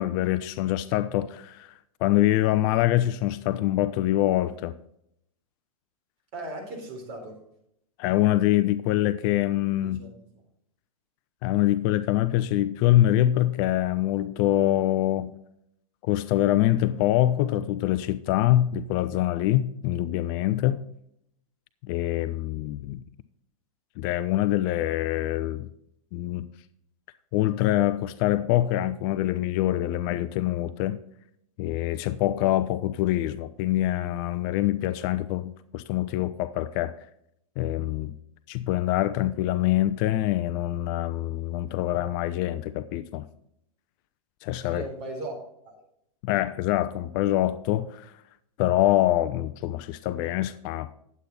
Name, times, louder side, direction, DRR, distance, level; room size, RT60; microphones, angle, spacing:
voice 1, 0.0-4.7 8.0-10.0 11.4-15.4 16.0-20.8 21.8-23.0 24.0-25.7 26.1-26.5 27.3-31.0 31.6-36.9 37.6-38.1 38.5-43.2 44.4-44.8 46.2-48.2 48.6-50.9, left 14 dB, 35° left, 0.5 m, -25 dB
voice 2, 6.3-7.4 10.0-10.1 44.7-45.4 45.6-45.8, right 2 dB, 40° right, 4.0 m, -37 dB
10.0 x 8.3 x 4.1 m
hypercardioid pair, 115°, 18 cm